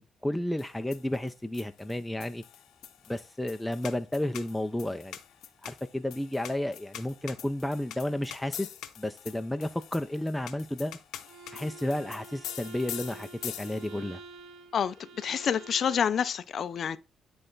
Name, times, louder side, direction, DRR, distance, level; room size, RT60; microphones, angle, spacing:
voice 1, 0.0-2.4 3.1-5.2 5.6-8.7 9.0-11.0 11.5-14.2, left 1 dB, 5° left, 0.5 m, -32 dB
sound 1, 0.6-14.1, left 11 dB, 85° left, 0.8 m, -45 dB
Bowed string instrument, 11.2-16.2, right 4 dB, 80° right, 1.2 m, -48 dB
voice 2, 14.7-17.0, left 8 dB, 55° left, 0.5 m, -28 dB
9.9 x 3.4 x 3.9 m
cardioid pair, 90°, 0 cm